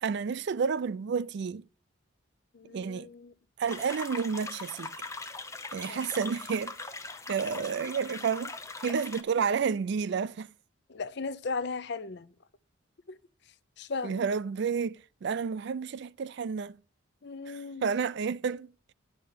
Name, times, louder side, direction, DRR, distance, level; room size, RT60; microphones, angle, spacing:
voice 1, 0.0-1.7 2.7-3.1 3.6-4.9 5.7-6.7 7.3-8.5 8.8-10.5 14.0-16.8 17.5-18.9, right 6 dB, 60° right, 0.3 m, -30 dB
voice 2, 2.5-3.3 5.9-6.0 10.9-12.3 13.1-13.2 13.8-14.2 17.2-17.8, left 4 dB, 55° left, 0.6 m, -36 dB
sound 1, 3.7-9.2, left 3 dB, 15° left, 0.9 m, -41 dB
10.5 x 5.2 x 6.6 m
head